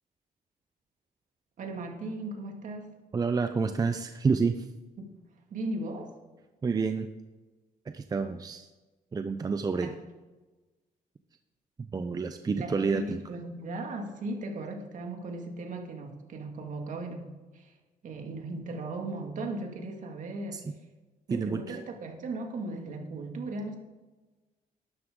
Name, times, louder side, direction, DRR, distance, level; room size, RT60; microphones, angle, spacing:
voice 1, 1.6-2.9 5.0-5.1 5.5-6.1 9.8-9.9 12.6-17.7 18.0-20.6 21.3-23.8, right 2 dB, 55° right, 3 dB, 2.2 m, -37 dB
voice 2, 3.1-4.6 6.6-7.1 7.9-8.7 9.1-9.9 11.8-13.2 20.5-20.6 21.3-21.8, right 4 dB, 25° right, 8 dB, 0.6 m, -29 dB
12.5 x 11.5 x 3.8 m, 1.2 s
cardioid pair, 120°, 16 cm